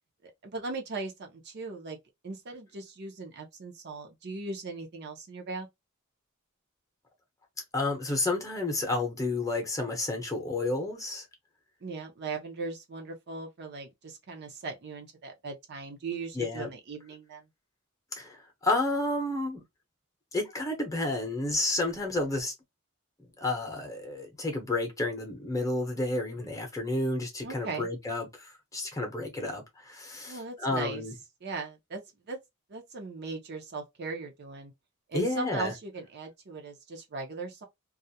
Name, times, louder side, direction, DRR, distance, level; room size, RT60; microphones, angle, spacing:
voice 1, 0.2-2.0 2.2-5.7 11.8-17.5 27.4-27.9 30.3-31.0 31.4-32.0 32.3-32.4 32.7-34.7 35.1-37.6, right 3 dB, 50° right, 0.6 m, -38 dB
voice 2, 7.7-11.2 16.3-16.7 18.2-19.6 20.3-22.5 23.4-31.1 35.1-35.7, left 2 dB, 15° left, 0.7 m, -31 dB
2.4 x 2.0 x 2.7 m
head